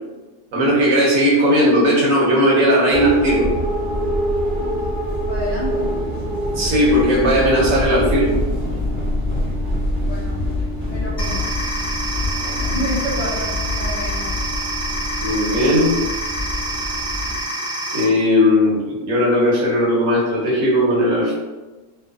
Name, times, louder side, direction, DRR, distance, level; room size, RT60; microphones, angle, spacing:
voice 1, 0.5-3.4 6.5-8.3 12.4-12.5 15.2-16.0 17.9-21.3, equal, 75° right, -5 dB, 1.2 m, -17 dB
sound 1, 2.9-17.4, equal, 50° right, 0.6 m, -24 dB
voice 2, 5.3-5.9 10.0-10.5 10.9-11.5 12.7-14.3, equal, 85° left, -9 dB, 0.3 m, -29 dB
sound 2, 11.2-18.0, right 1 dB, 30° left, 1.0 m, -27 dB
3.0 x 2.1 x 2.3 m, 1.2 s
omnidirectional pair, 1.5 m